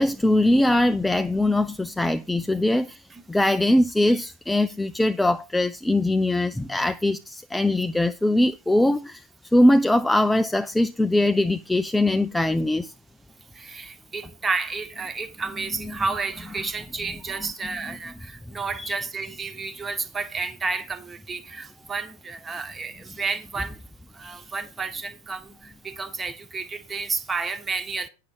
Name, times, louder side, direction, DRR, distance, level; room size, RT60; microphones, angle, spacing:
voice 1, 0.0-3.0 3.3-9.2 9.5-12.9 18.8-18.9, left 1 dB, 5° left, 0.4 m, -21 dB
voice 2, 13.6-23.8 24.1-28.1, right 4 dB, 15° right, 1.2 m, -31 dB
9.2 x 6.5 x 5.0 m
figure-of-eight pair, 90°, 0 cm